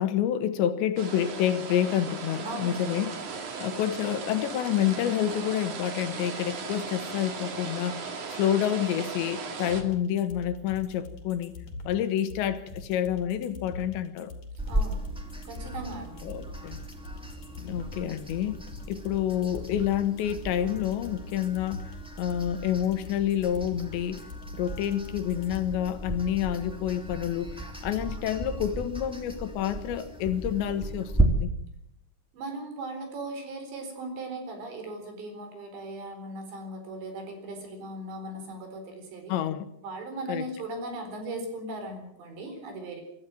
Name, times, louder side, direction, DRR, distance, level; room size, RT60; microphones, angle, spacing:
voice 1, 0.0-3.1 3.6-11.5 11.9-14.3 16.2-16.8 17.6-18.6 18.9-21.9 22.2-24.2 24.5-31.5 39.3-39.7 40.3-40.5, left 10 dB, 75° left, 10 dB, 3.4 m, -28 dB
sound 1, 1.0-9.8, right 5 dB, 50° right, 3.3 m, -37 dB
voice 2, 2.4-2.8 14.7-15.1 15.5-16.2 32.3-39.4 39.8-43.0, right 2 dB, 70° right, 6 dB, 6.4 m, -38 dB
sound 2, 9.7-25.7, left 2 dB, 45° left, 4.5 m, -43 dB
sound 3, 14.6-31.2, right 2 dB, ahead, 1.3 m, -35 dB
26.0 x 13.5 x 7.7 m, 0.74 s
omnidirectional pair, 5.2 m